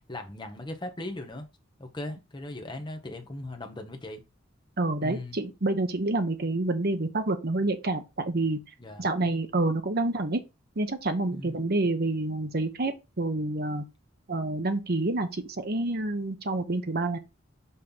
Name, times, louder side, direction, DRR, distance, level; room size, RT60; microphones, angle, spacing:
voice 1, 0.1-1.5 1.8-4.2 5.0-5.4 8.8-9.1 11.3-11.6, left 1 dB, 20° left, 1.0 m, -38 dB
voice 2, 4.8-8.6 9.0-10.4 10.8-13.8 14.3-17.2, right 2 dB, 50° right, 0.9 m, -28 dB
5.5 x 3.2 x 5.5 m
head